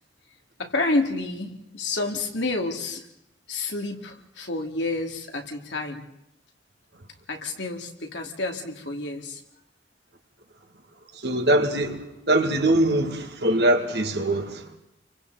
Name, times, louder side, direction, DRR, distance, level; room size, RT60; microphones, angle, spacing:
voice 1, 0.6-3.0 3.5-6.0 7.3-9.4, left 2 dB, 85° left, 2.6 m, -29 dB
voice 2, 11.2-12.0 12.3-14.6, right 1 dB, 65° right, 2.3 m, -22 dB
30.0 x 24.0 x 4.1 m
head